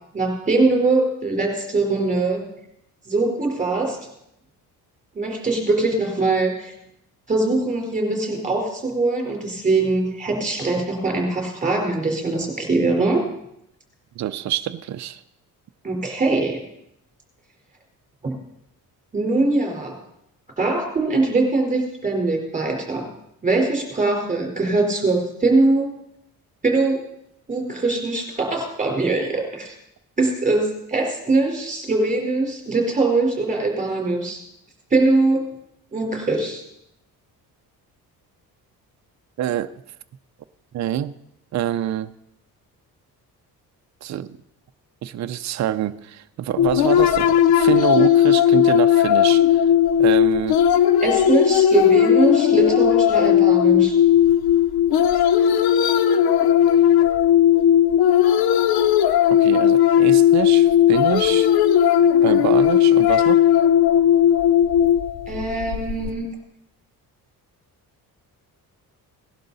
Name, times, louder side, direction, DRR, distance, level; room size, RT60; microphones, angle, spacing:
voice 1, 0.1-2.4 3.0-4.0 5.1-6.7 7.3-13.2 15.8-16.6 18.2-18.4 19.1-20.0 20.6-23.0 23.4-25.9 26.6-27.0 27.5-29.7 30.2-34.4 34.9-35.4 35.9-36.6 51.0-54.0 65.3-66.2, right 3 dB, 20° right, 4.2 m, -22 dB
voice 2, 14.2-15.2 39.4-39.8 40.7-41.1 41.5-42.1 44.0-44.4 45.0-49.6 50.0-50.6 59.3-61.5 62.2-63.5, right 11 dB, 50° right, 0.6 m, -26 dB
sound 1, 46.6-66.1, left 10 dB, 80° left, 0.9 m, -16 dB
18.0 x 11.5 x 4.1 m
cardioid pair, 135°, 37 cm